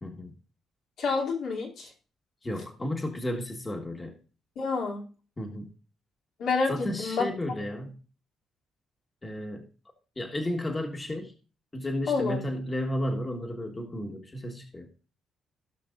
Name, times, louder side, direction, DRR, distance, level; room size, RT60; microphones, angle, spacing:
voice 1, 0.0-0.3 2.4-4.1 5.4-5.7 6.7-8.0 9.2-9.6 10.2-11.3 11.7-14.9, left 1 dB, 25° left, 3 dB, 1.5 m, -33 dB
voice 2, 1.0-1.9 4.6-5.0 6.4-6.7 7.0-7.3 12.1-12.4, left 4 dB, 75° left, -3 dB, 2.8 m, -28 dB
17.0 x 5.9 x 2.5 m, 0.37 s
cardioid pair, 90°, 0 cm